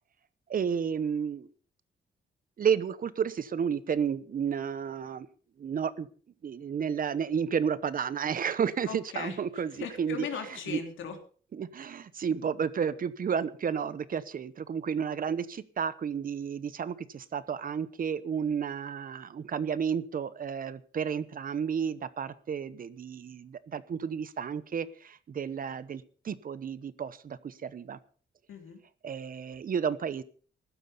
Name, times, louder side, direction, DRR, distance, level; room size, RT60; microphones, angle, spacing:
voice 1, 0.5-1.5 2.6-5.3 5.6-6.1 6.4-10.3 10.7-10.8 11.5-28.0 29.0-30.2, right 7 dB, 45° right, 16 dB, 1.0 m, -32 dB
voice 2, 8.9-11.2 28.5-28.8, left 6 dB, 85° left, 5 dB, 3.4 m, -38 dB
15.0 x 12.0 x 5.5 m, 0.42 s
cardioid pair, 135°, 20 cm